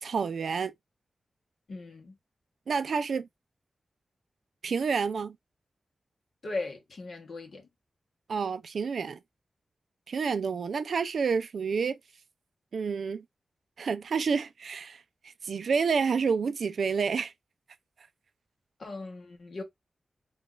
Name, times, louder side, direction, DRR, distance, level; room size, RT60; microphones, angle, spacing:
voice 1, 0.0-0.7 2.7-3.3 4.6-5.4 8.3-9.2 10.1-12.0 12.7-13.2 13.8-15.0 15.4-17.3, right 5 dB, 75° right, 0.3 m, -29 dB
voice 2, 1.7-2.2 6.4-7.7 18.8-19.6, left 3 dB, 60° left, 0.8 m, -38 dB
2.3 x 2.3 x 3.8 m
wide cardioid pair, 150°, 0 cm